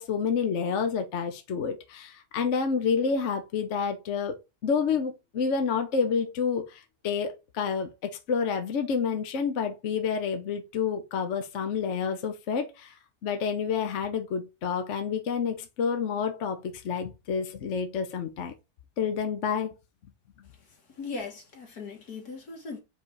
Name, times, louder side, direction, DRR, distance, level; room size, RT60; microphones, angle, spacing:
voice 1, 0.0-12.9 13.2-18.5 19.0-19.7, left 6 dB, 55° left, 1.1 m, -29 dB
voice 2, 20.9-22.8, left 4 dB, 80° left, 2.3 m, -38 dB
5.0 x 4.1 x 4.7 m
omnidirectional pair, 1.6 m